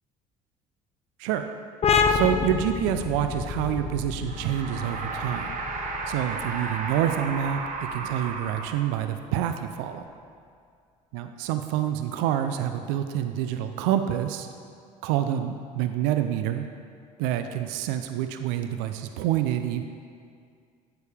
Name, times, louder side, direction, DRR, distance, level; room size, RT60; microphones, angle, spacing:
voice 1, 1.2-1.5 2.1-5.5 6.1-7.6 7.9-10.0 11.1-14.5 15.0-16.7 17.2-19.8, right 10 dB, 70° right, 8 dB, 0.4 m, -27 dB
sound 1, 1.8-9.1, left 5 dB, 35° left, 0.6 m, -29 dB
sound 2, 4.2-9.3, right 4 dB, 45° right, 0.9 m, -34 dB
8.2 x 6.8 x 3.4 m, 2.2 s
hypercardioid pair, 65°, 18 cm